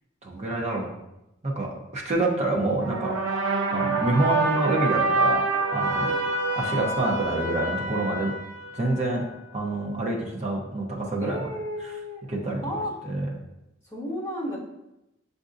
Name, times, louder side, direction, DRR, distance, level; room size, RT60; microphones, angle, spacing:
voice 1, 0.2-0.9 1.4-3.1 3.7-5.5 5.7-6.1 6.6-8.3 8.7-9.2 9.5-11.4 12.3-12.6 13.1-13.3, right 2 dB, 35° right, -1 dB, 0.8 m, -27 dB
sound 1, 2.8-9.2, right 3 dB, 85° right, 0.7 m, -26 dB
voice 2, 5.9-6.2 11.2-13.1 13.8-14.6, left 1 dB, 10° left, -8 dB, 1.6 m, -34 dB
7.1 x 2.6 x 2.5 m, 0.90 s
head